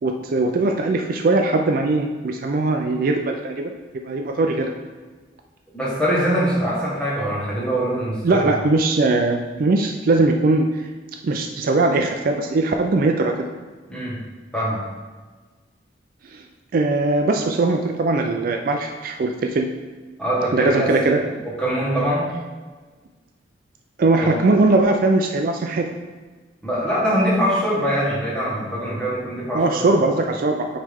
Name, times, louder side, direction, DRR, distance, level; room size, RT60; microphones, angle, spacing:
voice 1, 0.0-3.7 4.0-4.7 8.2-10.8 11.2-13.5 16.3-16.4 16.7-19.7 20.5-21.2 24.0-25.9 29.5-30.7, right 2 dB, 50° right, 4 dB, 0.4 m, -20 dB
voice 2, 5.7-8.5 13.9-14.2 14.5-14.8 20.2-22.3 24.2-24.3 26.6-30.1, equal, 5° left, -8 dB, 1.6 m, -23 dB
8.7 x 3.2 x 3.5 m, 1.4 s
head